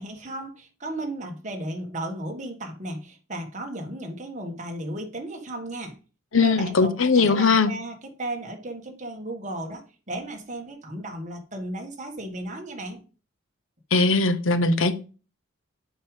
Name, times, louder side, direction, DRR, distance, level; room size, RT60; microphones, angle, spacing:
voice 1, 0.0-6.0 6.4-13.0, right 1 dB, 35° right, 1.7 m, -35 dB
voice 2, 6.3-7.7 13.9-15.0, left 4 dB, 75° left, 0.9 m, -20 dB
7.2 x 4.9 x 5.0 m
head